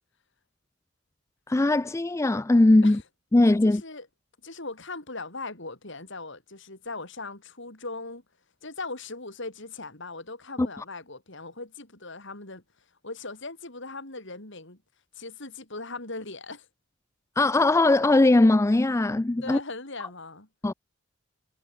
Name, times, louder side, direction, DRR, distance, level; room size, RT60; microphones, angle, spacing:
voice 1, 1.5-3.0 3.3-3.8 10.6-10.7 17.4-19.6 20.6-20.7, left 2 dB, 15° left, 0.3 m, -20 dB
voice 2, 3.6-4.1 4.4-8.2 8.6-12.6 13.0-14.8 15.1-16.7 19.4-20.5, left 3 dB, 60° left, 4.5 m, -39 dB
head